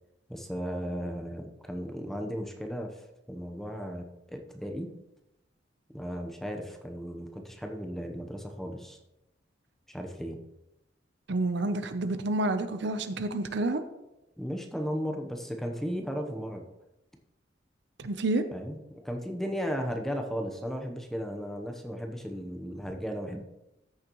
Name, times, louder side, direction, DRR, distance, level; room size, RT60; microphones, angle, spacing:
voice 1, 0.3-3.0 3.3-4.9 5.9-9.0 9.9-10.4 14.4-16.6 18.5-23.4, equal, ahead, 3 dB, 0.9 m, -35 dB
voice 2, 11.3-13.8 18.0-18.4, right 2 dB, 65° right, 10 dB, 0.7 m, -29 dB
13.5 x 6.5 x 3.1 m, 0.92 s
head